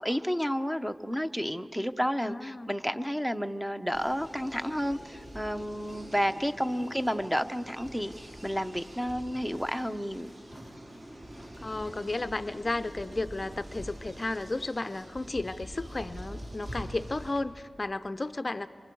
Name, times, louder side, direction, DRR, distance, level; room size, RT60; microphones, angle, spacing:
voice 1, 0.0-10.3, equal, 5° right, 9 dB, 0.8 m, -31 dB
voice 2, 2.2-2.7 6.7-6.9 11.6-18.7, left 2 dB, 35° left, 12 dB, 0.5 m, -33 dB
sound 1, 3.9-17.4, equal, 40° right, 3.7 m, -45 dB
28.5 x 25.0 x 4.7 m, 2.1 s
cardioid pair, 65°, 0 cm